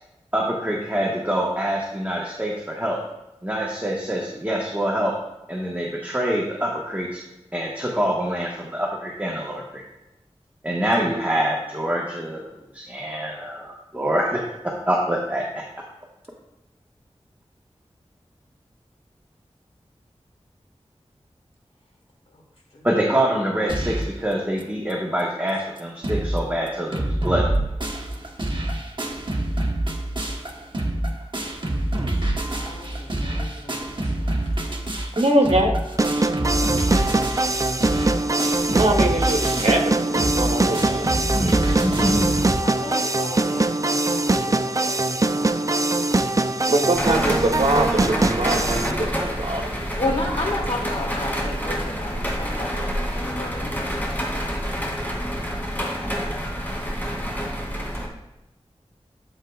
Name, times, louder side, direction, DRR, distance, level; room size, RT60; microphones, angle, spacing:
voice 1, 0.3-3.0 3.4-5.1 5.5-7.2 7.5-9.6 10.6-12.5 12.7-15.4 22.8-27.5 41.4-42.3, right 1 dB, 15° right, -3 dB, 1.4 m, -25 dB
sound 1, 23.7-24.2 24.6-24.7 24.9-25.0 25.5-25.6 25.8-26.4 26.7-42.5, right 1 dB, 45° right, 1.2 m, -26 dB
voice 2, 32.1-33.9 42.6-44.6 44.8-46.2 50.0-53.9, left 2 dB, 70° left, -2 dB, 2.6 m, -33 dB
voice 3, 35.2-35.8 38.7-41.1 46.7-49.9, right 1 dB, 65° right, 1 dB, 1.3 m, -23 dB
sound 2, 36.0-48.9, right 2 dB, 30° right, 0.5 m, -22 dB
sound 3, 46.9-58.1, equal, 15° left, 2.7 m, -27 dB
11.5 x 7.6 x 2.4 m, 0.95 s
wide cardioid pair, 50°, 11 cm